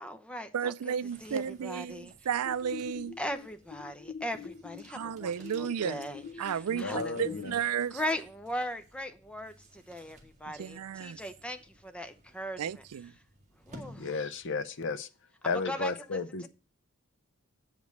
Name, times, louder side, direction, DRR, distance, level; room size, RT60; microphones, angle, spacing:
voice 1, 0.0-0.9 1.2-2.1 3.2-5.3 5.6-7.4 7.9-12.8 13.7-14.1 15.7-16.5, equal, 5° left, 0.7 m, -39 dB
voice 2, 0.5-3.1 4.9-6.0 6.4-8.0 10.6-11.2 12.6-13.1, right 8 dB, 90° right, 0.4 m, -33 dB
sound 1, 0.9-14.8, equal, 30° right, 1.7 m, -57 dB
sound 2, 2.4-7.4, left 6 dB, 80° left, 1.0 m, -45 dB
voice 3, 6.7-7.5 14.0-15.1 15.4-16.5, left 4 dB, 55° left, 0.7 m, -33 dB
8.0 x 5.1 x 6.4 m
head